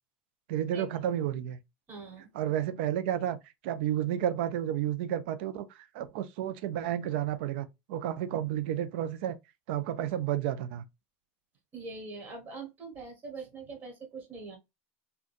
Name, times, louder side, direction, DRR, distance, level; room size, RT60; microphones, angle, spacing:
voice 1, 0.5-1.6 2.3-3.4 3.6-9.4 9.7-10.8, right 11 dB, 75° right, 0.4 m, -31 dB
voice 2, 1.9-2.3 11.7-14.6, right 3 dB, 30° right, 1.5 m, -43 dB
3.8 x 2.2 x 2.5 m
supercardioid pair, 135°, 6 cm